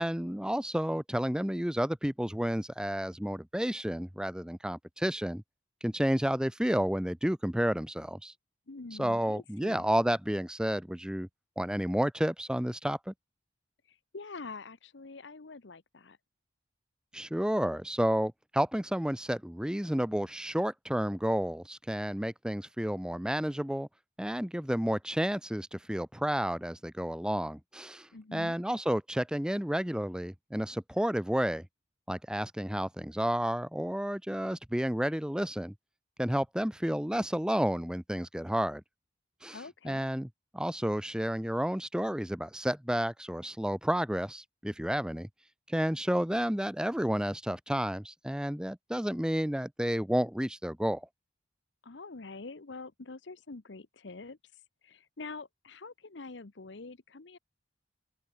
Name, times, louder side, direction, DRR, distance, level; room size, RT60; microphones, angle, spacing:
voice 1, 0.0-5.4 5.8-8.3 9.0-11.3 11.6-13.1 17.1-23.9 24.2-31.7 32.1-35.7 36.2-38.8 39.4-39.6 39.8-40.3 40.5-45.3 45.7-51.1, equal, 5° right, 0.7 m, -31 dB
voice 2, 8.7-9.9 13.9-16.2 28.1-28.5 39.5-40.0 51.8-54.4 54.8-57.4, left 3 dB, 70° left, 1.0 m, -45 dB
open air
head